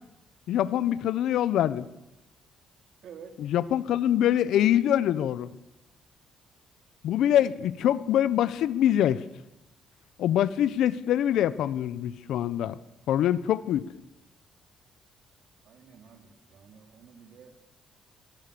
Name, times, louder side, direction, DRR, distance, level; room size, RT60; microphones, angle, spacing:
voice 1, 0.5-1.9 3.4-5.5 7.0-9.2 10.2-12.8 13.1-13.9, left 11 dB, 80° left, 16 dB, 1.1 m, -24 dB
voice 2, 3.0-3.4 15.6-17.6, right 7 dB, 70° right, 6 dB, 3.5 m, -50 dB
27.5 x 23.0 x 7.1 m, 0.91 s
cardioid pair, 90°, 0 cm